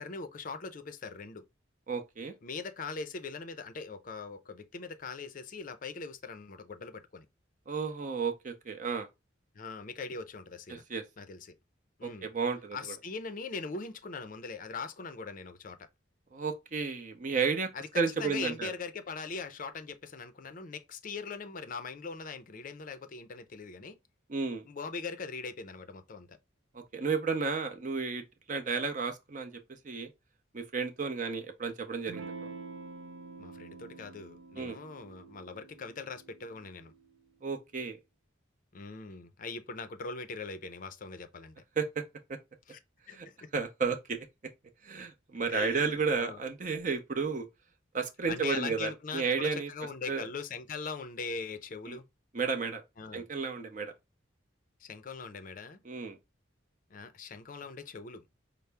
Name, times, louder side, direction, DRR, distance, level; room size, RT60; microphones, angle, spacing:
voice 1, 0.0-1.4 2.4-7.3 9.5-10.8 11.2-11.6 12.0-12.3 12.7-15.9 17.7-24.0 24.7-26.4 33.4-36.9 38.7-41.6 42.7-42.8 43.1-43.5 45.5-46.4 48.3-52.0 53.0-53.3 54.8-55.8 56.9-58.3, left 4 dB, 45° left, 0.5 m, -41 dB
voice 2, 1.9-2.3 7.7-9.1 10.7-11.0 12.0-12.8 16.3-17.7 17.9-18.7 24.3-24.6 26.7-28.2 28.5-29.5 29.8-30.1 30.5-32.5 34.6-34.8 37.4-38.0 41.8-41.9 42.3-42.4 43.2-43.3 43.5-44.3 44.8-47.5 47.9-49.7 50.1-50.3 51.9-52.0 52.3-52.8 53.1-53.9 55.9-56.2, right 5 dB, 40° right, 0.6 m, -32 dB
Electric guitar / Strum, 32.1-37.2, right 4 dB, 85° right, 0.5 m, -47 dB
5.4 x 2.0 x 3.3 m
head